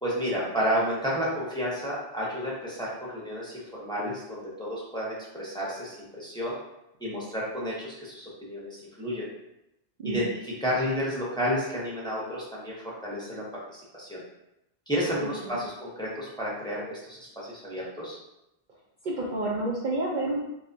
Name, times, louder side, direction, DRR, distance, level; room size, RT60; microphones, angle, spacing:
voice 1, 0.0-6.5 7.0-9.3 10.0-14.2 14.9-18.2, equal, 5° left, -6 dB, 0.7 m, -31 dB
voice 2, 15.2-15.6 19.0-20.4, right 2 dB, 55° right, -4 dB, 0.6 m, -30 dB
3.4 x 3.1 x 2.6 m, 0.87 s
omnidirectional pair, 1.1 m